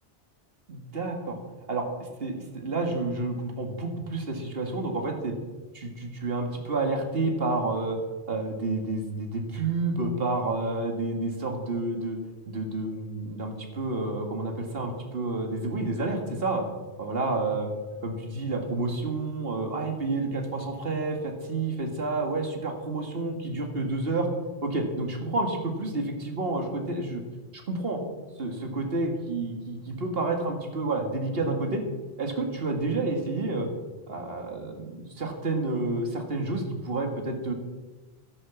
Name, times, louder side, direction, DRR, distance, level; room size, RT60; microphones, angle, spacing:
voice 1, 0.7-1.4 1.7-5.3 5.7-8.0 8.3-12.2 12.5-16.7 17.0-17.7 18.0-24.3 24.6-27.2 27.5-28.0 28.4-31.8 32.2-33.7 34.1-37.5, right 2 dB, 65° right, 3 dB, 2.3 m, -29 dB
13.0 x 11.0 x 7.2 m, 1.2 s
omnidirectional pair, 1.1 m